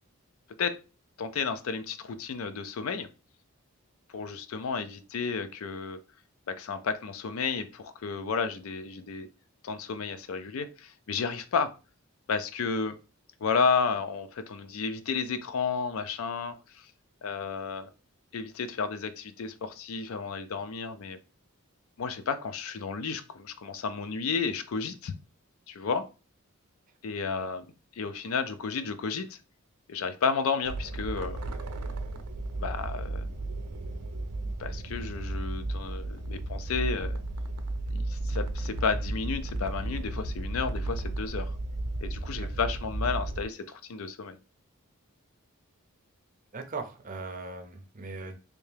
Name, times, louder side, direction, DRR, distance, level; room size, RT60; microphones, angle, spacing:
voice 1, 1.2-3.1 4.1-6.0 6.5-9.3 9.6-11.7 12.3-12.9 13.4-16.8 17.2-17.9 18.3-21.2 22.0-25.1 25.7-26.1 27.0-27.7 28.0-29.4 29.9-31.4 32.6-33.3 34.6-37.2 37.9-41.5 42.0-44.4, left 5 dB, 70° left, 0.4 m, -32 dB
sound 1, 30.6-43.4, right 2 dB, 90° right, 0.6 m, -34 dB
voice 2, 46.5-48.3, right 3 dB, 35° right, 0.6 m, -39 dB
3.4 x 2.7 x 3.3 m
head